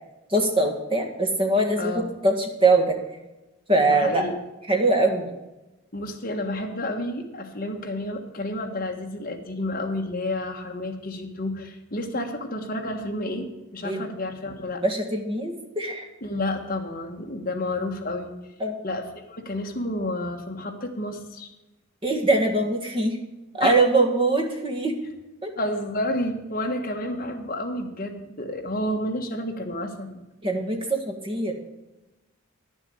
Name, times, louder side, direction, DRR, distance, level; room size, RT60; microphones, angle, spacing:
voice 1, 0.3-3.0 3.7-4.2 4.7-5.3 12.2-12.3 13.8-14.0 14.8-16.1 18.6-18.8 22.0-23.2 23.5-25.0 25.4-25.5 30.4-31.5, right 2 dB, 25° right, 2 dB, 1.8 m, -22 dB
voice 2, 1.8-2.1 3.9-4.3 5.9-14.8 16.2-18.5 18.8-21.5 23.6-23.8 25.6-30.2, left 1 dB, 40° left, 3 dB, 1.5 m, -30 dB
11.0 x 7.1 x 8.4 m, 1.0 s
head